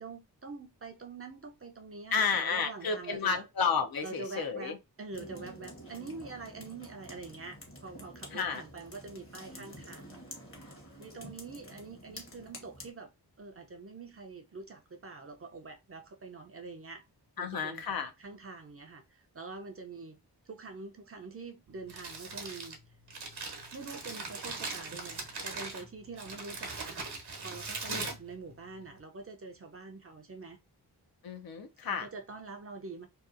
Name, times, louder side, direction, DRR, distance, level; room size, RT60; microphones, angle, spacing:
voice 1, 0.0-3.4 4.0-10.2 11.0-13.1 13.4-17.0 17.4-17.8 18.2-20.2 20.5-22.8 23.7-30.6 31.8-33.1, right 3 dB, 35° right, 0.5 m, -45 dB
voice 2, 2.1-4.8 8.3-8.6 17.4-18.1 27.9-28.1 31.2-32.1, left 5 dB, 60° left, 0.6 m, -31 dB
sound 1, 5.1-12.9, left 1 dB, 35° left, 0.9 m, -49 dB
Crumpling crinkling, 21.7-29.0, right 4 dB, 70° right, 0.9 m, -41 dB
2.7 x 2.3 x 2.4 m
wide cardioid pair, 80°, 40 cm